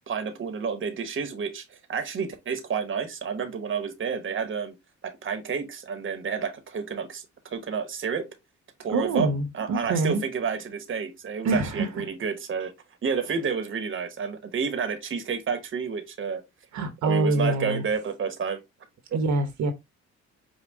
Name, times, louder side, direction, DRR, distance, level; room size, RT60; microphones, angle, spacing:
voice 1, 0.1-4.7 5.0-8.3 8.8-9.3 9.5-12.7 13.0-16.4 17.0-18.6 19.1-19.2, right 6 dB, 40° right, 1.0 m, -30 dB
voice 2, 8.9-10.2 11.4-12.0 16.7-17.8 19.1-19.7, right 2 dB, 70° right, 1.0 m, -25 dB
5.4 x 2.3 x 3.4 m
cardioid pair, 90°, 30 cm